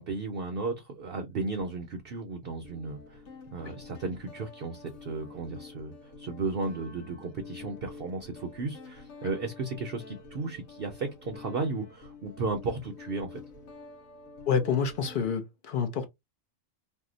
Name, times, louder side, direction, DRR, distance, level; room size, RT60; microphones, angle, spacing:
voice 1, 0.0-3.2 3.5-13.4, right 3 dB, 55° right, 0.7 m, -34 dB
Guitar, 1.6-1.7 2.6-15.3, left 4 dB, 85° left, 1.2 m, -48 dB
voice 2, 14.5-16.1, left 6 dB, 55° left, 0.6 m, -28 dB
2.7 x 2.1 x 3.7 m
omnidirectional pair, 1.4 m